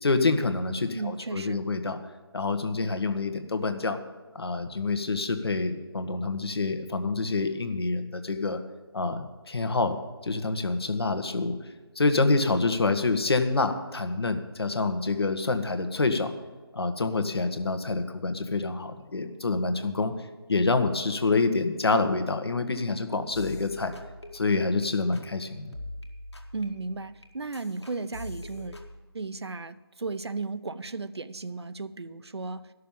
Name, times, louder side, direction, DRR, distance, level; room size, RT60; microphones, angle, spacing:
voice 1, 0.0-2.0 2.3-4.0 4.3-8.6 8.9-10.0 10.2-11.5 11.9-16.3 16.7-20.1 20.5-23.9 24.3-25.7, left 3 dB, 70° left, 8 dB, 1.5 m, -27 dB
voice 2, 0.9-1.6 26.5-28.8 29.1-32.7, right 3 dB, 80° right, 13 dB, 0.8 m, -35 dB
sound 1, 23.3-24.9 25.1-25.4 25.7-29.0, left 1 dB, 85° left, 2.0 m, -43 dB
11.5 x 6.7 x 9.1 m, 1.3 s
figure-of-eight pair, 160°, 14 cm